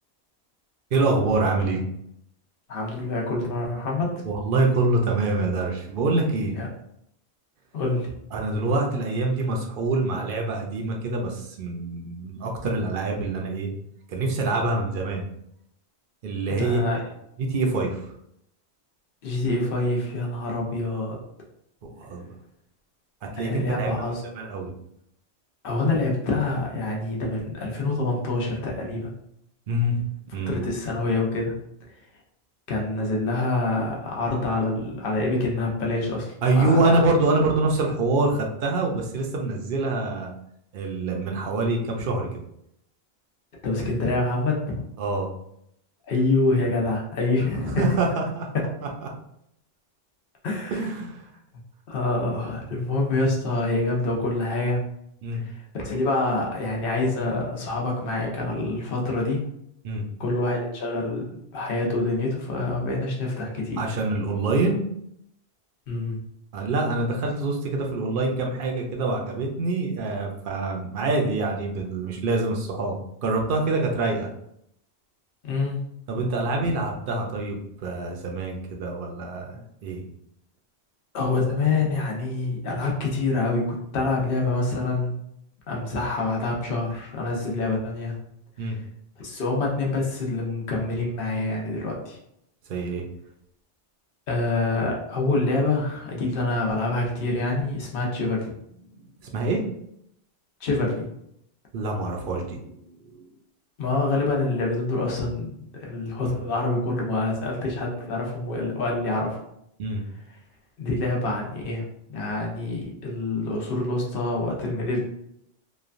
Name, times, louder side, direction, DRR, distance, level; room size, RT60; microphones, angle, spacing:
voice 1, 0.9-1.8 4.3-6.6 8.3-13.7 14.1-15.2 16.2-16.9 17.4-18.1 22.0-22.2 23.2-24.1 24.4-24.7 29.7-30.0 30.3-30.6 36.4-40.3 40.7-42.4 45.0-45.3 47.7-48.5 49.0-49.1 50.7-51.2 55.2-55.4 59.8-60.0 63.8-64.8 66.5-74.3 76.1-80.0 88.6-88.8 92.7-93.1 99.2-99.7 101.7-103.3 109.8-110.0, right 2 dB, 60° right, 1 dB, 0.7 m, -25 dB
voice 2, 2.7-4.2 6.5-6.7 7.7-8.1 16.5-17.0 19.2-21.2 23.4-24.2 25.6-29.1 30.5-31.6 32.7-36.8 43.6-44.8 46.1-47.9 50.4-50.8 51.9-54.8 55.3-59.4 60.2-61.3 61.5-63.8 65.9-66.2 75.4-75.8 81.1-85.1 85.7-88.2 88.6-88.7 89.2-92.2 94.3-98.5 100.6-101.1 103.8-109.4 110.8-111.8 112.1-115.0, left 2 dB, 60° left, -1 dB, 0.9 m, -26 dB
3.0 x 2.2 x 2.5 m, 0.75 s
omnidirectional pair, 1.1 m